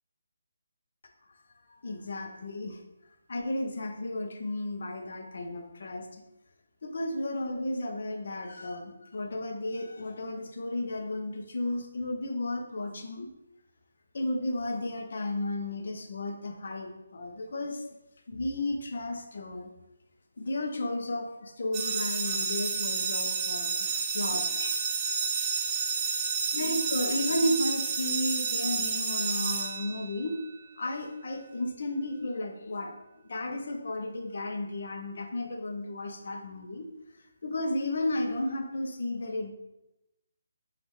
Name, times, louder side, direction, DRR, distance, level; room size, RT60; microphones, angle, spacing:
voice 1, 1.7-2.8 3.3-6.1 6.8-13.3 14.1-17.8 18.3-19.7 20.4-24.8 26.5-30.4 30.8-32.9 33.3-36.9 37.4-39.5, left 1 dB, 60° left, 3 dB, 0.7 m, -33 dB
sound 1, 21.7-30.4, right 5 dB, 15° right, 0.4 m, -30 dB
5.3 x 2.5 x 3.1 m, 0.93 s
hypercardioid pair, 165°, 0 cm